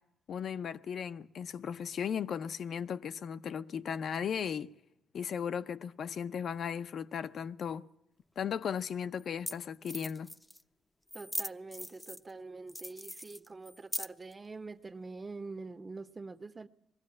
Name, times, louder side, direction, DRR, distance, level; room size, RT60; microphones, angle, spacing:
voice 1, 0.3-4.7 5.1-7.9 8.4-10.3, left 7 dB, 60° left, 0.6 m, -36 dB
sound 1, 8.4-8.5 9.2-9.3 9.5-9.6 9.8-10.6 11.1-12.3 12.7-14.3, left 1 dB, 5° left, 0.6 m, -40 dB
voice 2, 11.1-16.7, right 3 dB, 25° right, 1.0 m, -45 dB
20.5 x 15.0 x 8.6 m
cardioid pair, 90°, 0 cm